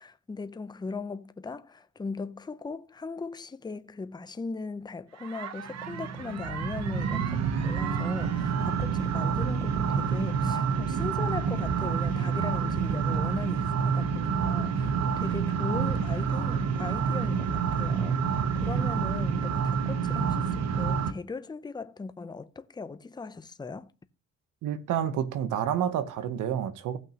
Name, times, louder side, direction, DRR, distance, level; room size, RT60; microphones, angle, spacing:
voice 1, 0.0-23.9, left 4 dB, 15° left, 0.6 m, -38 dB
sound 1, 5.2-21.1, right 6 dB, 60° right, 1.0 m, -28 dB
voice 2, 24.6-27.0, right 9 dB, 85° right, 1.0 m, -29 dB
16.0 x 6.0 x 2.9 m
cardioid pair, 90°, 30 cm